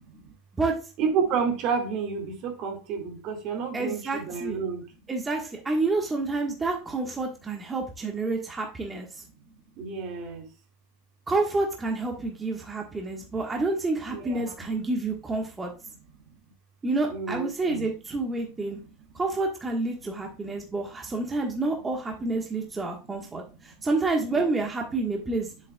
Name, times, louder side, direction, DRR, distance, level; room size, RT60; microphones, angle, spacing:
voice 1, 1.0-4.8 9.8-10.4 14.1-14.5 17.1-17.9 24.3-24.4, right 6 dB, 50° right, 2.1 m, -30 dB
voice 2, 3.7-4.6 5.1-9.2 11.3-15.7 16.8-18.8 19.1-25.5, right 3 dB, 15° right, 1.4 m, -29 dB
7.5 x 7.1 x 2.3 m
supercardioid pair, 120°, 0 cm